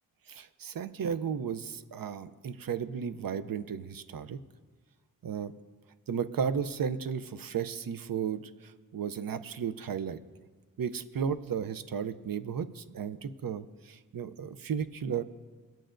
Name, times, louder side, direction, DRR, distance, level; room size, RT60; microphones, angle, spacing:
voice 1, 0.3-4.4 5.2-5.5 6.1-10.2 10.8-15.2, right 7 dB, 75° right, 13 dB, 0.6 m, -34 dB
23.5 x 9.0 x 2.5 m, 1.4 s
wide cardioid pair, 100°, 35 cm